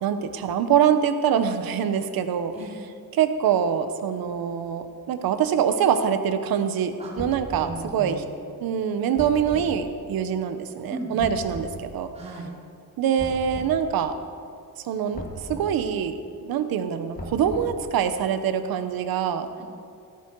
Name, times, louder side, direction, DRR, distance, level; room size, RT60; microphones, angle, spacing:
voice 1, 0.0-2.5 3.1-8.2 8.6-12.1 13.0-14.1 14.8-19.5, right 8 dB, 80° right, 9 dB, 1.1 m, -24 dB
sound 1, 7.2-7.8 9.2-9.7 11.2-11.8 13.2-13.8 15.1-15.7 17.2-17.9, equal, 25° left, 2.2 m, -37 dB
voice 2, 7.6-8.2 10.9-11.2 12.1-12.5 19.6-19.7, right 2 dB, 20° right, -6 dB, 3.4 m, -36 dB
15.5 x 13.5 x 4.7 m, 2.4 s
cardioid pair, 160°, 35 cm